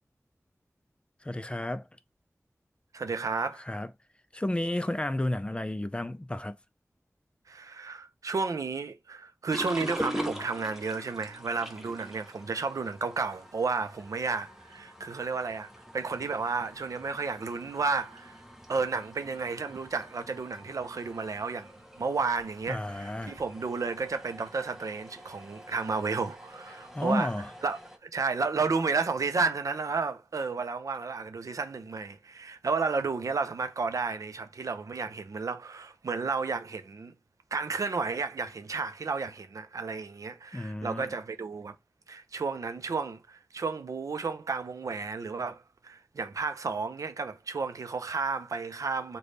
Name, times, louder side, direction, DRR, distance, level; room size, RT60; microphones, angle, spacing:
voice 1, 1.2-1.8 3.7-3.9 4.3-6.6 22.7-23.4 26.9-27.5 40.5-41.1, left 1 dB, 20° left, 0.4 m, -32 dB
voice 2, 2.9-3.6 7.5-18.4 18.7-27.3 27.6-37.1 37.5-41.7 42.1-49.2, right 4 dB, 90° right, 0.4 m, -32 dB
sound 1, 9.5-28.0, equal, 5° right, 0.7 m, -44 dB
3.3 x 2.2 x 3.8 m
wide cardioid pair, 60°, 6 cm